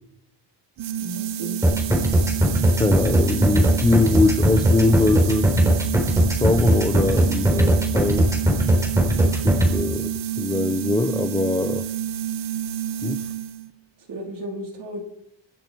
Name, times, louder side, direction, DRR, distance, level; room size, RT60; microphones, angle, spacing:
sound 1, 0.8-13.7, right 10 dB, 80° right, 1.2 m, -29 dB
voice 1, 1.0-1.6 14.1-15.0, right 1 dB, 50° right, 1 dB, 4.3 m, -34 dB
sound 2, 1.6-9.7, right 1 dB, 5° right, 4.1 m, -18 dB
voice 2, 2.7-5.5 6.1-8.3 9.3-11.8 13.0-13.2, left 3 dB, 10° left, 8 dB, 0.7 m, -22 dB
25.0 x 9.7 x 4.6 m, 0.76 s
cardioid pair, 150°, 43 cm